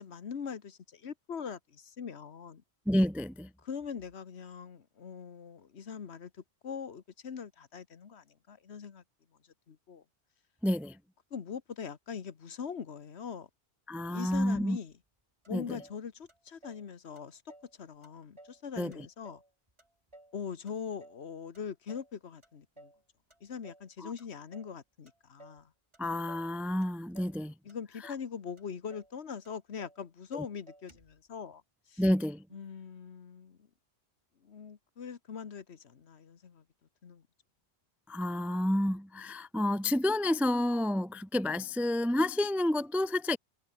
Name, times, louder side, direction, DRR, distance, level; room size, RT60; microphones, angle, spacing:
voice 1, 0.0-2.6 3.6-6.3 6.6-9.0 9.7-10.0 11.3-13.5 14.1-14.9 15.5-19.4 20.3-22.9 23.4-25.7 27.6-32.0 32.5-33.6 34.4-36.6 37.0-37.2, left 6 dB, 75° left, 1.5 m, -42 dB
voice 2, 2.9-3.5 10.6-11.0 13.9-14.8 15.5-15.6 18.8-19.1 24.0-24.1 26.0-27.5 30.3-30.4 32.0-32.4 38.1-43.4, left 1 dB, ahead, 0.3 m, -29 dB
Motor vehicle (road), 14.3-14.9 15.4-15.5 15.8-16.9 17.2-17.8 18.0-18.6 18.9-20.4 20.7-21.3 21.5-22.1 22.4-23.0 23.3-23.9 24.2-24.8 25.1-25.6 25.9-26.5 26.8-27.4 27.7-28.3 28.6-28.7 28.9-29.2 29.4-30.0 30.3-30.4 30.7-31.2, right 1 dB, 25° right, 2.9 m, -56 dB
omnidirectional pair, 1.1 m